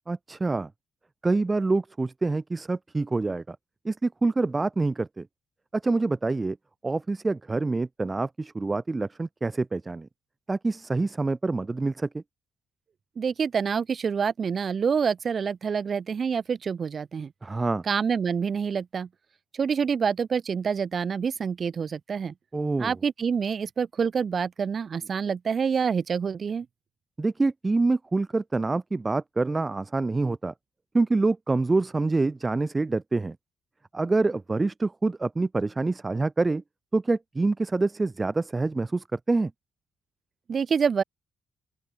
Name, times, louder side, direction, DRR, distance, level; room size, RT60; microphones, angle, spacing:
voice 1, 0.1-0.7 1.2-3.6 3.8-5.3 5.7-6.6 6.8-10.1 10.5-12.2 17.4-17.8 22.5-23.0 27.2-30.5 30.9-33.4 33.9-36.6 36.9-39.5, right 3 dB, 25° right, 5.8 m, -26 dB
voice 2, 13.2-17.3 17.9-19.1 19.5-22.3 22.8-26.7 40.5-41.0, right 6 dB, 50° right, 4.7 m, -27 dB
open air
hypercardioid pair, 45°, 0 cm